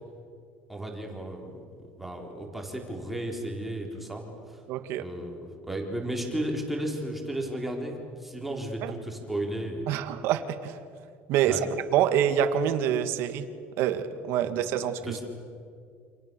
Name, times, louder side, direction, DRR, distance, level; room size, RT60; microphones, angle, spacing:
voice 1, 0.7-1.6 2.0-4.2 5.0-9.9 11.4-11.6 14.4-14.5 15.0-15.2, right 1 dB, 5° right, 0 dB, 3.9 m, -34 dB
voice 2, 4.7-5.0 8.8-8.9 9.9-10.8 11.3-11.6 11.9-13.5 13.8-15.2, right 10 dB, 60° right, 9 dB, 2.1 m, -26 dB
28.5 x 28.0 x 7.0 m, 2.3 s
cardioid pair, 170°, 5 cm